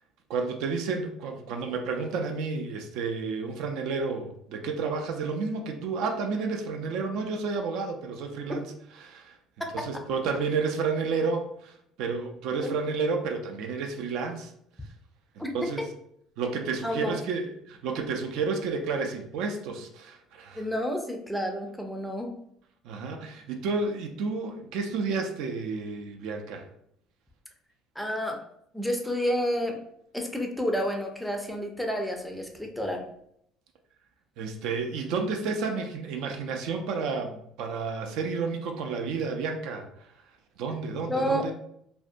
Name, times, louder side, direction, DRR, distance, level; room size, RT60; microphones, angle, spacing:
voice 1, 0.3-8.7 9.0-9.4 9.7-14.5 15.4-15.8 16.4-20.6 22.8-26.6 34.4-40.1 40.6-41.5, right 4 dB, 75° right, 4 dB, 0.4 m, -31 dB
voice 2, 9.6-10.0 15.4-15.5 15.8-15.9 16.8-17.1 20.5-22.3 28.0-28.4 28.7-29.8 30.1-33.0 41.1-41.5, equal, ahead, 2 dB, 0.4 m, -30 dB
2.6 x 2.1 x 2.5 m, 0.72 s
cardioid pair, 120°, 0 cm